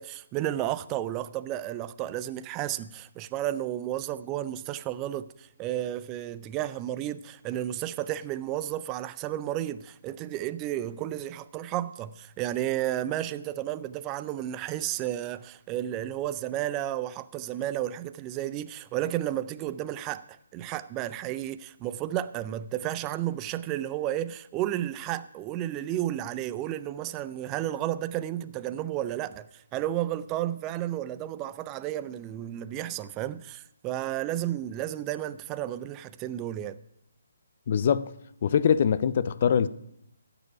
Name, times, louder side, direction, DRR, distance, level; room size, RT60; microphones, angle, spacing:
voice 1, 0.0-36.8, right 13 dB, 20° right, 0.4 m, -32 dB
voice 2, 37.7-38.1 38.4-39.7, left 7 dB, 45° left, 0.5 m, -23 dB
15.5 x 6.9 x 5.8 m
figure-of-eight pair, 140°, 0 cm